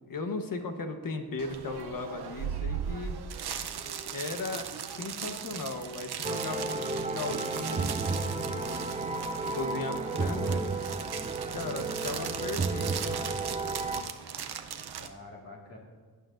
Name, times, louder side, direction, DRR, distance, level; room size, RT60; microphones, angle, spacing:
voice 1, 0.1-3.2 4.1-9.2 9.4-10.7 11.5-13.4, left 3 dB, 60° left, 6 dB, 1.1 m, -37 dB
sound 1, 1.4-15.1, right 8 dB, 80° right, 0.7 m, -38 dB
sound 2, 6.2-14.0, right 3 dB, 20° right, 0.4 m, -32 dB
voice 2, 10.8-11.6 15.0-15.8, left 2 dB, 40° left, -3 dB, 1.9 m, -49 dB
17.5 x 9.2 x 2.5 m, 1.4 s
wide cardioid pair, 130°, 38 cm